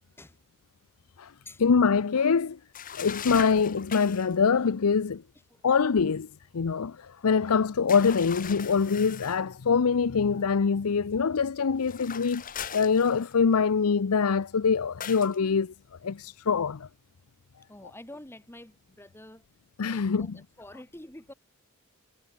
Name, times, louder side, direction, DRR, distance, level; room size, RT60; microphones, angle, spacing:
voice 1, 1.6-2.6 2.9-5.2 5.6-6.3 6.5-15.7 16.0-16.9 19.8-20.4, left 5 dB, 85° left, 0.6 m, -24 dB
sound 1, 2.7-4.4 7.9-9.4 11.8-13.5 15.0-15.4, left 8 dB, 40° left, 1.1 m, -40 dB
voice 2, 17.7-19.4 19.9-21.3, left 1 dB, 10° left, 1.5 m, -47 dB
head